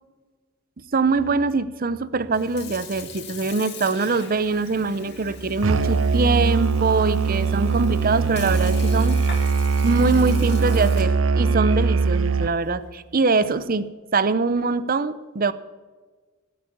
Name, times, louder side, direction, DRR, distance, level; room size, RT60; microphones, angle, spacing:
voice 1, 0.9-9.2 9.8-15.5, right 4 dB, 45° right, 15 dB, 0.7 m, -23 dB
Sink (filling or washing) / Fill (with liquid), 2.2-13.8, left 6 dB, 55° left, 2.5 m, -43 dB
Musical instrument, 5.6-12.6, right 4 dB, 85° right, 0.6 m, -21 dB
17.0 x 8.4 x 8.6 m, 1.4 s
head